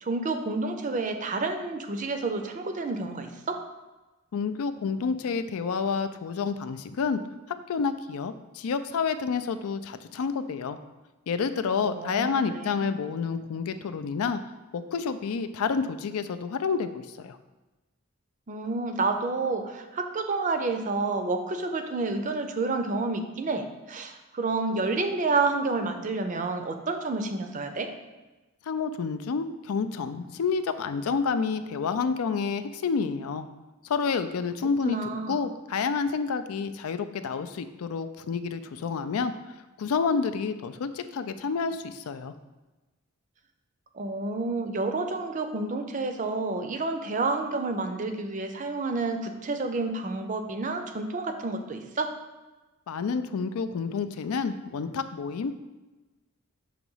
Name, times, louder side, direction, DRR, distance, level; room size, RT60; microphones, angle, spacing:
voice 1, 0.0-3.6 11.8-12.9 18.5-27.9 34.8-35.4 43.9-52.1, right 3 dB, 35° right, 6 dB, 0.5 m, -29 dB
voice 2, 4.3-7.2 7.7-10.8 11.3-14.4 14.7-17.4 28.7-33.5 33.9-35.0 35.3-39.3 39.8-42.3 52.9-55.7, left 5 dB, 90° left, 10 dB, 0.4 m, -29 dB
5.9 x 3.0 x 5.4 m, 1.1 s
head